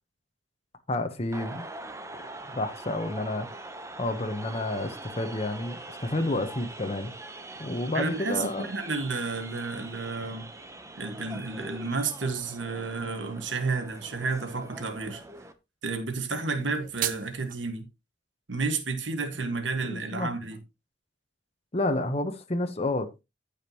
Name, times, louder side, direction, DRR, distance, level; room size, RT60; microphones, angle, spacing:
voice 1, 0.9-1.6 2.5-3.5 4.0-7.1 7.6-8.7 19.4-19.5 19.8-20.3 21.7-23.2, left 2 dB, 35° left, 1.1 m, -30 dB
sound 1, 1.3-15.5, right 2 dB, 15° right, 0.9 m, -43 dB
voice 2, 7.9-10.5 11.0-15.2 15.8-17.8 18.5-20.6, right 4 dB, 90° right, 1.8 m, -31 dB
Ruler Snapping, 16.5-17.6, right 10 dB, 50° right, 0.8 m, -34 dB
15.0 x 5.2 x 3.0 m
head